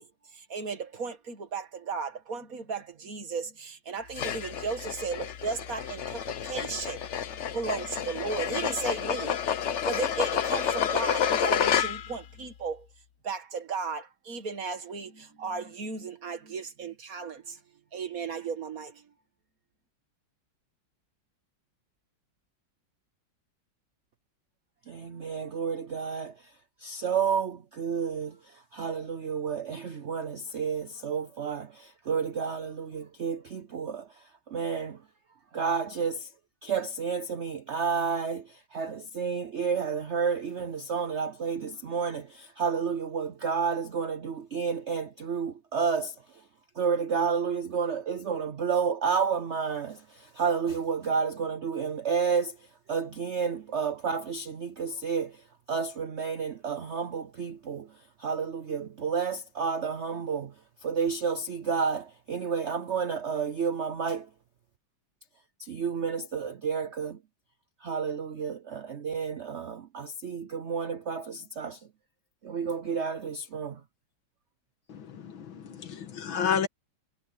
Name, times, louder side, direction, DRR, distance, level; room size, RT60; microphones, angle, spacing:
voice 1, 0.0-9.4 9.8-12.9 13.2-17.6 17.9-19.1, right 5 dB, 45° right, 2.1 m, -35 dB
sound 1, 4.1-12.2, left 8 dB, 55° left, 0.8 m, -29 dB
voice 2, 24.9-26.3 26.8-28.4 28.7-34.1 34.5-35.0 35.5-36.3 36.6-46.1 46.8-52.6 52.9-55.4 55.7-57.9 58.2-60.5 60.8-64.3 65.6-67.2 67.8-71.8 72.4-73.8, right 6 dB, 90° right, 0.6 m, -30 dB
voice 3, 74.9-76.7, left 7 dB, 75° left, 2.1 m, -31 dB
omnidirectional pair, 2.2 m